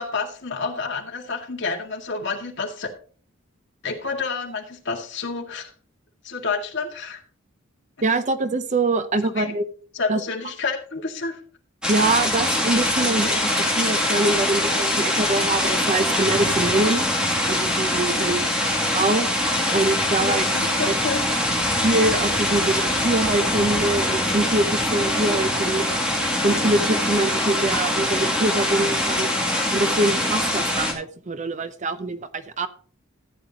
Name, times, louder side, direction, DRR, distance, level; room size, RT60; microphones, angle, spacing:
voice 1, 0.0-2.9 3.8-5.7 6.2-7.2 9.2-9.5 9.9-11.4 18.1-18.4 20.2-21.2, left 4 dB, 60° left, 2 dB, 2.0 m, -29 dB
voice 2, 8.0-9.6 10.1-10.2 11.9-17.0 17.5-18.4 18.9-19.3 19.7-20.5 20.9-21.0 21.8-26.0 26.4-29.3 29.7-32.7, right 2 dB, 35° right, 11 dB, 0.7 m, -24 dB
sound 1, 11.8-30.9, left 1 dB, 5° right, 2.4 m, -23 dB
14.0 x 9.3 x 2.9 m, 0.43 s
head